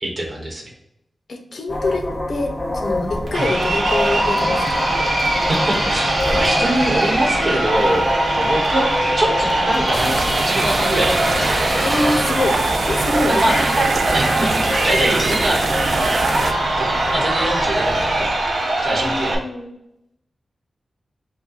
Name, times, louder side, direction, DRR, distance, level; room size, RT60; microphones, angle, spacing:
voice 1, 0.0-0.7 3.4-3.5 5.4-8.9 9.2-12.1 13.3-15.6 16.8-18.3 18.8-19.4, right 1 dB, 40° right, 0 dB, 1.1 m, -24 dB
voice 2, 1.3-4.8 11.8-12.6 12.9-13.6 18.9-19.7, left 2 dB, 60° left, 4 dB, 0.8 m, -25 dB
sound 1, 1.7-18.3, left 1 dB, 15° left, 0.5 m, -27 dB
Crowd, 3.3-19.3, right 2 dB, 90° right, 1.2 m, -21 dB
sound 2, 9.9-16.5, right 4 dB, 55° right, 0.3 m, -25 dB
5.5 x 2.2 x 4.0 m, 0.83 s
wide cardioid pair, 140°, 0 cm